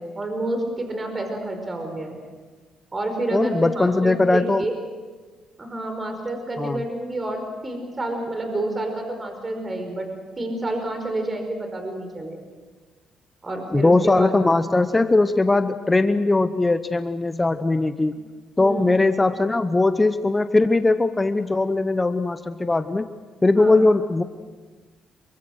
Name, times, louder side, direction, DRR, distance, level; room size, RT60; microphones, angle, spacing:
voice 1, 0.0-2.2 2.9-4.8 5.6-10.1 10.4-12.4 13.4-14.3 18.6-18.9 23.5-23.8, right 1 dB, 25° right, 5 dB, 5.0 m, -29 dB
voice 2, 3.3-4.6 6.6-6.8 13.7-18.1 18.6-23.1 23.4-24.2, left 2 dB, 20° left, 10 dB, 0.9 m, -20 dB
27.0 x 24.0 x 6.5 m, 1.4 s
cardioid pair, 90°, 0 cm